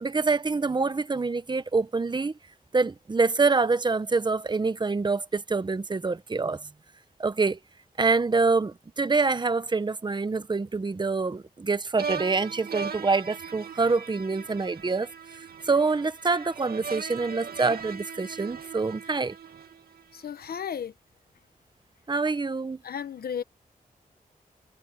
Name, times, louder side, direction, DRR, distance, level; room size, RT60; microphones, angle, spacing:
voice 1, 0.0-2.3 2.7-6.6 7.2-7.6 8.0-19.3 22.1-22.8, right 4 dB, 30° right, 1.0 m, -26 dB
sound 1, 12.0-20.2, right 6 dB, 80° right, 2.1 m, -39 dB
voice 2, 20.1-20.9 22.8-23.4, left 8 dB, 90° left, 1.1 m, -34 dB
wide cardioid pair, 100°, 16 cm